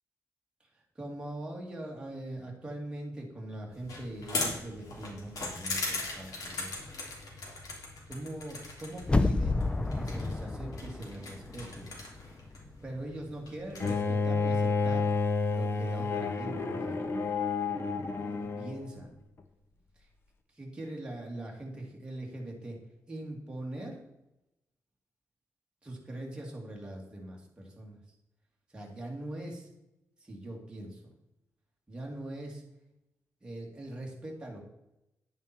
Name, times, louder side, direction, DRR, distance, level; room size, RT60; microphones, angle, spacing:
voice 1, 0.7-6.7 8.1-9.7 10.0-12.0 12.8-15.1 15.5-17.1 18.2-19.1 20.0-20.1 20.5-22.8 23.1-24.0 25.8-28.0 28.7-29.7 30.2-31.1 31.9-32.6 33.4-34.6, right 1 dB, 15° right, -2 dB, 2.6 m, -42 dB
sound 1, 3.7-13.9, left 3 dB, 85° left, 3.3 m, -40 dB
sound 2, 9.0-12.0 12.3-12.4, left 2 dB, 15° left, 0.5 m, -30 dB
Bowed string instrument, 13.8-18.8, left 4 dB, 40° left, 1.1 m, -30 dB
10.5 x 9.3 x 4.5 m, 0.91 s
wide cardioid pair, 135°, 6 cm